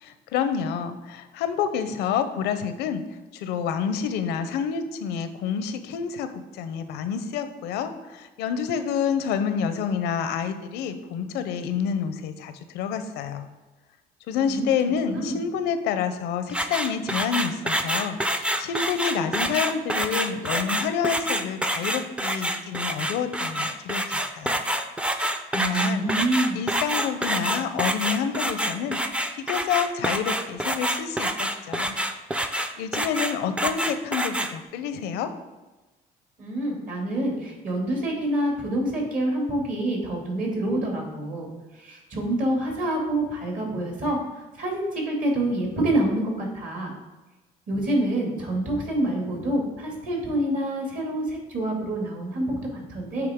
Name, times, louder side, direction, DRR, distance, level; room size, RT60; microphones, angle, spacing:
voice 1, 0.0-3.0 3.3-13.5 14.3-24.6 25.5-26.1 26.5-29.0 29.4-32.0 32.8-35.3, left 7 dB, 90° left, 10 dB, 0.6 m, -28 dB
sound 1, 16.5-34.5, right 1 dB, 5° right, 0.4 m, -27 dB
voice 2, 25.5-26.6 36.4-41.5 41.7-44.2 44.5-47.0 47.7-53.3, right 1 dB, 50° right, 0 dB, 2.1 m, -27 dB
8.7 x 3.6 x 3.6 m, 1.1 s
cardioid pair, 110°, 17 cm